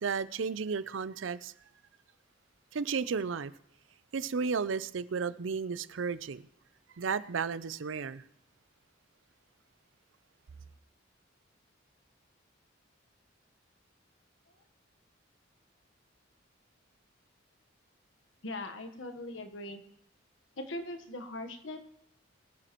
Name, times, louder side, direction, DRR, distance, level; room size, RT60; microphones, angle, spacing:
voice 1, 0.0-1.5 2.7-3.5 4.1-6.4 7.0-8.2, right 5 dB, 75° right, 0.5 m, -33 dB
voice 2, 18.4-19.8 20.6-21.8, left 1 dB, 75° left, 1.3 m, -40 dB
22.5 x 9.1 x 3.0 m
head